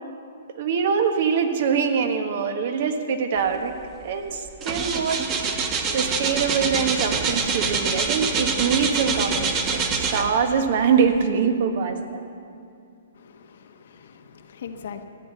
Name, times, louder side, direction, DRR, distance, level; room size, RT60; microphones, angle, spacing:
voice 1, 0.6-3.7 4.0-5.5 5.9-12.2, right 6 dB, 55° right, 6 dB, 1.4 m, -24 dB
sound 1, 3.8-4.0 4.3-10.6 11.1-11.2, right 4 dB, 25° right, 1.2 m, -25 dB
voice 2, 13.2-15.0, left 7 dB, 65° left, 5 dB, 1.2 m, -41 dB
14.5 x 9.0 x 7.9 m, 2.5 s
hypercardioid pair, 135°, 0 cm